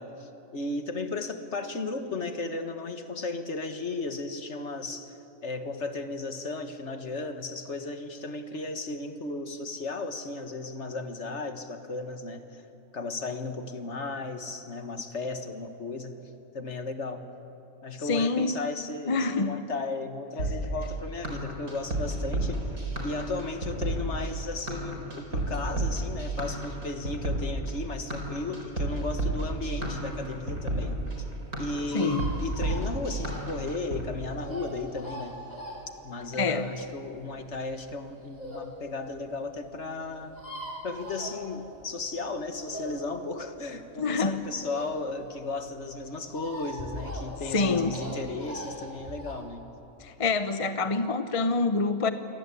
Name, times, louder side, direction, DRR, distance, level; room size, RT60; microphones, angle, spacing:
voice 1, 0.0-12.6 12.9-16.2 16.5-17.3 17.8-22.7 23.0-31.0 31.6-35.4 36.0-40.4 40.8-49.7, left 3 dB, 50° left, 7 dB, 1.9 m, -35 dB
voice 2, 18.0-18.5 19.1-19.5 31.9-32.2 36.4-36.7 44.0-44.4 47.5-48.0 50.0-52.1, left 4 dB, 30° left, 9 dB, 0.8 m, -26 dB
sound 1, 20.4-34.0, right 1 dB, 90° right, 5.1 m, -31 dB
sound 2, 30.1-38.7 39.2-39.3 39.5-39.6 39.7-39.8 40.0-41.9 42.2-45.3 45.6-49.3, equal, 30° right, 5.7 m, -41 dB
28.0 x 23.0 x 8.5 m, 3.0 s
omnidirectional pair, 1.5 m